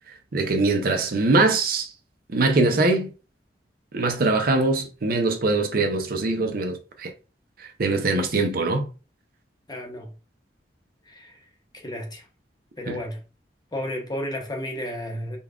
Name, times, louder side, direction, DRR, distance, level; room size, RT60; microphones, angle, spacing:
voice 1, 0.3-1.9 2.3-3.1 3.9-7.1 7.6-8.9 12.9-13.0, right 3 dB, 55° right, 0.6 m, -22 dB
voice 2, 9.7-10.1 11.1-11.4 11.7-12.3 12.8-13.2 13.7-15.4, left 1 dB, 25° left, 0.8 m, -33 dB
5.3 x 2.3 x 2.4 m
head